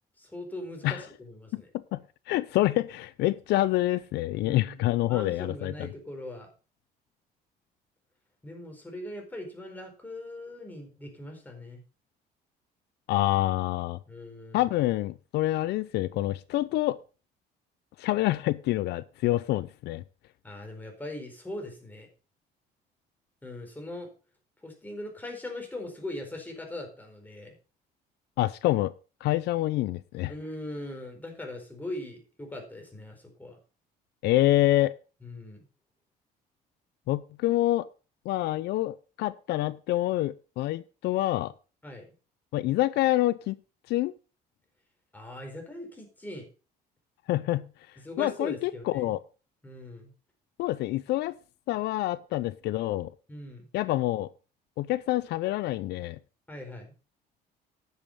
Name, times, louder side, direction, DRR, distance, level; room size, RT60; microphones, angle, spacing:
voice 1, 0.2-1.7 4.4-6.5 8.4-11.8 14.1-14.7 20.4-22.1 23.4-24.1 24.6-27.6 30.3-33.6 35.2-35.6 41.8-42.0 45.1-46.5 48.0-49.2 49.6-50.1 53.3-53.6 56.5-56.9, left 1 dB, 10° left, 2 dB, 4.4 m, -40 dB
voice 2, 2.3-5.9 13.1-14.0 14.5-17.0 18.0-20.0 28.4-28.9 29.2-30.3 34.2-34.9 37.1-37.9 38.3-41.5 42.5-43.6 43.9-44.1 47.3-47.6 48.2-49.2 50.6-51.4 51.7-53.1 53.7-54.3 54.8-56.2, left 16 dB, 75° left, 17 dB, 0.5 m, -27 dB
10.5 x 7.1 x 5.3 m, 0.35 s
cardioid pair, 110°, 17 cm